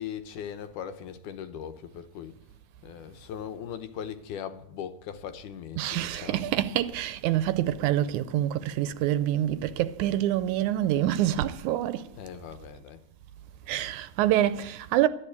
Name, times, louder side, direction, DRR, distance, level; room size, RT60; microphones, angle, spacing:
voice 1, 0.0-2.3 2.8-6.5 12.1-13.0, left 9 dB, 80° left, 2.4 m, -39 dB
voice 2, 5.8-12.1 13.7-15.1, right 13 dB, 80° right, 2.0 m, -26 dB
12.0 x 11.0 x 8.2 m
omnidirectional pair, 3.6 m